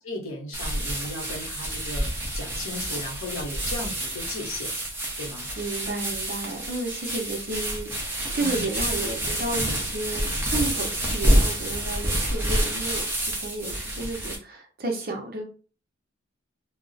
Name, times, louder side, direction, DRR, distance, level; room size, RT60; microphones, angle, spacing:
voice 1, 0.0-4.7 5.2-5.5 8.4-8.7, left 2 dB, 85° left, 1 dB, 0.9 m, -36 dB
sound 1, 0.5-14.4, right 1 dB, 10° right, 0.6 m, -28 dB
voice 2, 5.6-15.4, right 2 dB, 45° right, 2 dB, 0.7 m, -32 dB
2.4 x 2.0 x 3.9 m, 0.37 s
head